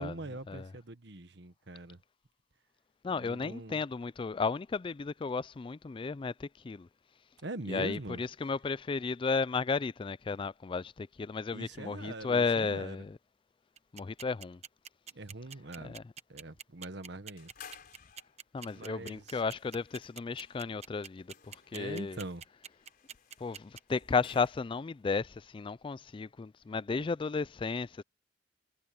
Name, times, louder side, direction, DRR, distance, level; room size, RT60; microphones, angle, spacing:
voice 1, 0.0-2.0 3.1-3.8 7.4-8.2 11.5-13.0 15.1-16.0 16.3-17.5 18.7-19.4 21.7-22.4 26.9-27.1, right 2 dB, 65° right, 1.3 m, -43 dB
voice 2, 3.0-6.9 7.7-13.2 13.9-14.6 15.8-16.0 18.5-22.2 23.4-28.0, left 4 dB, 30° left, 0.3 m, -34 dB
sound 1, 13.8-23.8, right 8 dB, 35° right, 1.0 m, -45 dB
sound 2, 17.4-24.9, left 7 dB, 55° left, 4.0 m, -57 dB
head